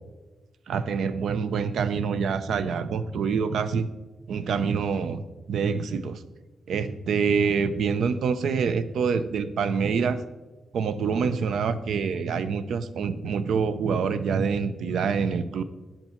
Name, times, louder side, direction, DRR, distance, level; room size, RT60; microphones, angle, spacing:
voice 1, 0.7-3.9 4.3-5.2 5.5-6.2 6.7-10.2 10.7-15.6, right 6 dB, 75° right, 13 dB, 0.6 m, -26 dB
12.0 x 5.9 x 4.4 m, 1.2 s
wide cardioid pair, 135°, 0 cm